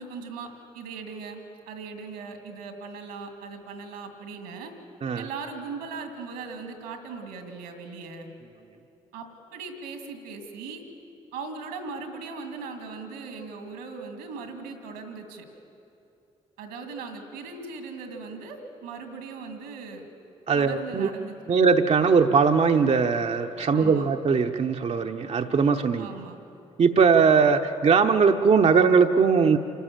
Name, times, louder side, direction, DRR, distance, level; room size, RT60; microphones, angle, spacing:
voice 1, 0.0-1.4 1.7-4.7 5.1-8.3 9.1-9.3 9.5-10.8 11.3-15.4 16.6-20.0 20.5-21.3 23.7-24.1 26.0-26.4, right 4 dB, 85° right, 5 dB, 2.4 m, -39 dB
voice 2, 20.5-21.1 21.5-26.1 26.8-29.6, right 5 dB, 45° right, 4 dB, 0.9 m, -20 dB
28.0 x 13.0 x 7.4 m, 2.8 s
hypercardioid pair, 45°, 15 cm